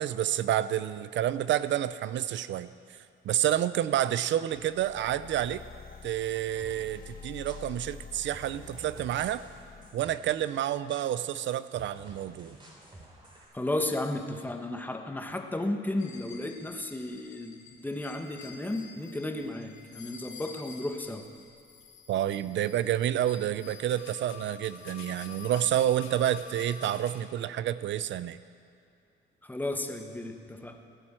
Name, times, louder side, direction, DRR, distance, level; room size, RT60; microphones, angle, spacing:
voice 1, 0.0-3.0 3.2-5.6 6.0-9.4 9.9-12.6 22.1-28.4, right 11 dB, 70° right, 15 dB, 0.5 m, -29 dB
sound 1, 4.5-9.9, left 6 dB, 45° left, 1.7 m, -48 dB
sound 2, 6.6-13.5, right 1 dB, 25° right, 3.8 m, -53 dB
voice 2, 13.5-21.3 29.4-30.8, left 1 dB, 10° left, 4 dB, 1.4 m, -34 dB
sound 3, 16.0-27.2, left 7 dB, 80° left, 1.9 m, -49 dB
16.5 x 9.9 x 7.6 m, 2.5 s
cardioid pair, 90°, 20 cm